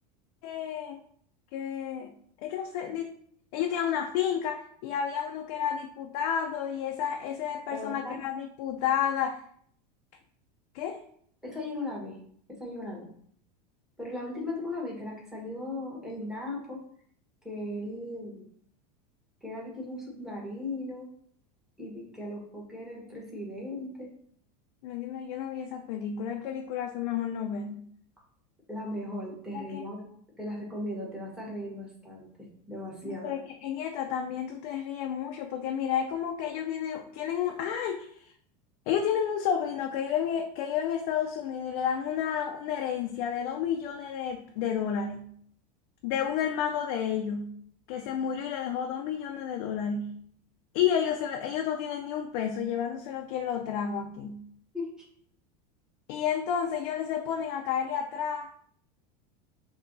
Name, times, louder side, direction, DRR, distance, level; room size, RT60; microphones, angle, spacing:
voice 1, 0.4-1.0 1.5-2.1 2.4-3.1 3.5-9.4 10.7-11.0 24.8-27.9 29.5-29.8 33.2-38.3 38.9-45.3 46.0-47.6 47.9-50.1 50.7-54.4 56.1-58.5, left 8 dB, 65° left, 3 dB, 0.5 m, -31 dB
voice 2, 7.7-8.2 11.4-12.2 12.6-13.1 14.0-16.8 17.4-18.5 19.4-21.1 21.8-24.1 28.7-30.0 30.4-33.3 54.7-54.9, left 1 dB, ahead, -4 dB, 1.3 m, -37 dB
4.5 x 2.8 x 2.6 m, 0.63 s
supercardioid pair, 125°, 21 cm